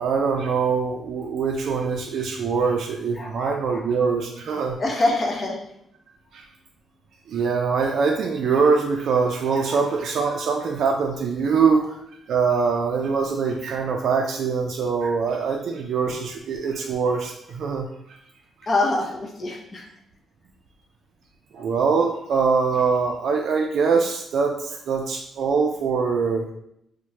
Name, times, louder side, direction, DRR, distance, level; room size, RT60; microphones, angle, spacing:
voice 1, 0.0-4.8 6.3-6.4 7.3-11.9 12.3-17.9 21.5-26.5, right 5 dB, 60° right, 1 dB, 0.3 m, -23 dB
voice 2, 3.2-3.8 4.8-5.6 9.7-9.8 18.7-19.8, left 2 dB, 30° left, 0 dB, 0.6 m, -25 dB
4.5 x 2.1 x 2.8 m, 0.75 s
cardioid pair, 160°, 0 cm